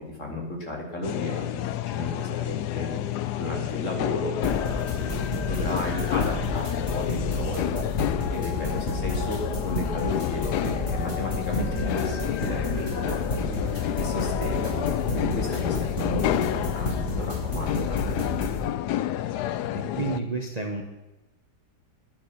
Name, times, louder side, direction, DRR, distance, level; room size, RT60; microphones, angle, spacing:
voice 1, 0.2-8.0 8.3-18.6, left 1 dB, 45° left, 0 dB, 3.1 m, -34 dB
sound 1, 1.0-20.2, left 13 dB, 75° left, 1.2 m, -30 dB
sound 2, 4.4-18.6, left 1 dB, 30° left, 5.4 m, -31 dB
voice 2, 19.7-20.8, right 3 dB, 25° right, 3 dB, 1.3 m, -30 dB
12.0 x 11.0 x 6.1 m, 1.0 s
omnidirectional pair, 1.8 m